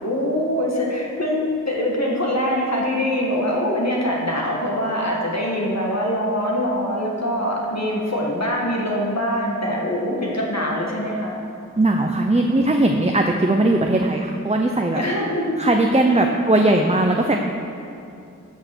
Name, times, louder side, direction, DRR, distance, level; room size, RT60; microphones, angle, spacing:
voice 1, 0.0-11.4 14.9-15.6 16.1-16.3, equal, 55° left, -3 dB, 1.9 m, -23 dB
voice 2, 11.8-15.0 15.6-17.4, right 2 dB, 20° right, 3 dB, 0.7 m, -19 dB
13.0 x 6.6 x 6.2 m, 2.7 s
wide cardioid pair, 45°, 31 cm